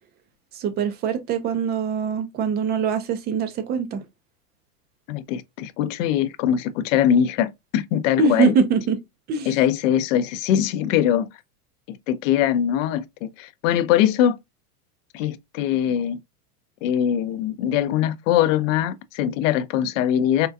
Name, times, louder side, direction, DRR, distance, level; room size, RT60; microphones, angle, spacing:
voice 1, 0.5-4.0 8.2-9.0 9.3-9.5, right 6 dB, 20° right, 0.4 m, -23 dB
voice 2, 5.1-8.5 9.5-11.3 11.9-14.4 15.1-16.2 16.8-20.5, left 10 dB, 55° left, 0.5 m, -22 dB
3.6 x 2.3 x 2.5 m
hypercardioid pair, 120°, 47 cm